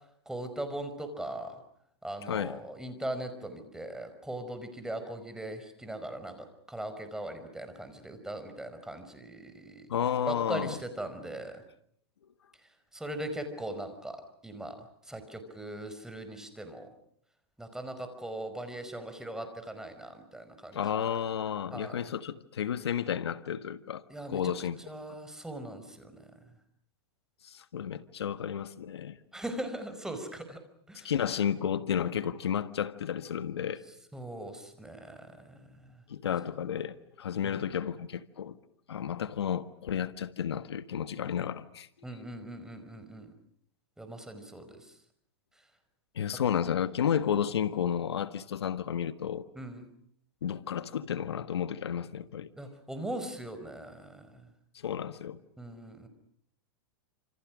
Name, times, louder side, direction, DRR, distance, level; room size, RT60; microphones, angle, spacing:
voice 1, 0.2-1.6 2.0-9.9 10.3-11.6 12.9-14.8 15.1-16.9 17.6-20.8 21.7-22.0 24.1-24.5 24.8-26.2 29.3-30.6 30.9-31.1 34.1-35.9 37.4-37.6 42.0-43.3 44.0-44.9 49.5-49.9 52.6-54.3 55.6-56.1, right 1 dB, 5° right, 5.3 m, -40 dB
voice 2, 2.2-2.6 9.9-10.8 20.7-24.0 24.3-24.8 27.4-29.2 31.0-33.8 36.1-38.5 38.9-41.9 46.1-49.4 50.4-52.5 54.7-55.4, left 8 dB, 85° left, 1.5 m, -32 dB
29.0 x 27.5 x 6.3 m
hypercardioid pair, 120°, 13 cm